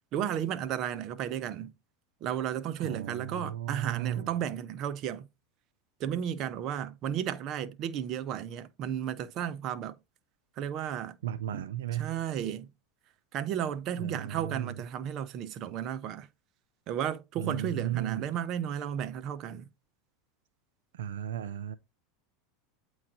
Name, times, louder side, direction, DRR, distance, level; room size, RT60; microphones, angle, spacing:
voice 1, 0.1-1.7 2.2-5.3 6.0-10.0 10.6-11.2 11.5-11.6 12.0-12.7 13.3-16.3 16.9-19.7, right 9 dB, 50° right, 0.7 m, -33 dB
voice 2, 2.8-4.3 11.2-12.1 14.0-14.9 17.4-18.3 20.9-21.8, right 10 dB, 80° right, 0.3 m, -35 dB
8.5 x 3.1 x 3.9 m
hypercardioid pair, 100°, 0 cm